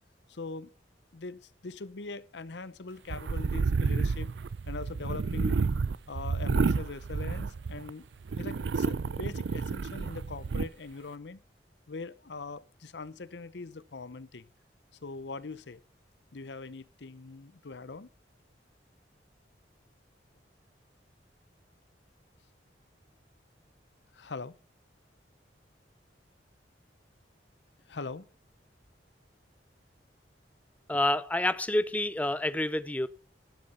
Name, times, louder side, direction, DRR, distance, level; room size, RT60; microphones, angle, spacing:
voice 1, 0.3-0.7 1.1-4.3 4.7-5.6 6.1-8.1 8.4-11.4 11.9-14.5 15.0-15.8 16.3-18.1 24.1-24.5 27.9-28.3, left 3 dB, 75° left, 0.7 m, -42 dB
sound 1, 3.1-7.9 8.3-10.7, right 4 dB, 85° right, 0.5 m, -30 dB
voice 2, 30.9-33.1, left 1 dB, 10° left, 0.5 m, -28 dB
11.5 x 8.7 x 5.5 m
head